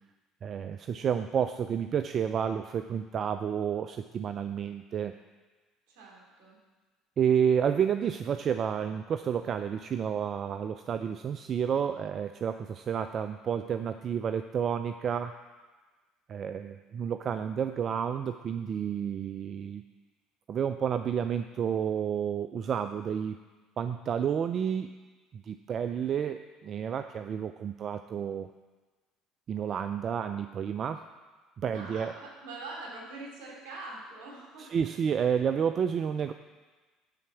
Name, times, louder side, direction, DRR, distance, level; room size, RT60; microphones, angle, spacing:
voice 1, 0.4-5.1 7.2-15.3 16.3-19.8 20.5-23.4 23.8-24.9 25.3-28.5 29.5-31.0 31.6-32.1 34.6-36.3, right 8 dB, 45° right, 9 dB, 0.4 m, -30 dB
voice 2, 5.9-6.6 31.7-34.7, right 2 dB, 70° right, -3 dB, 3.1 m, -43 dB
10.5 x 4.3 x 7.1 m, 1.3 s
hypercardioid pair, 65°, 0 cm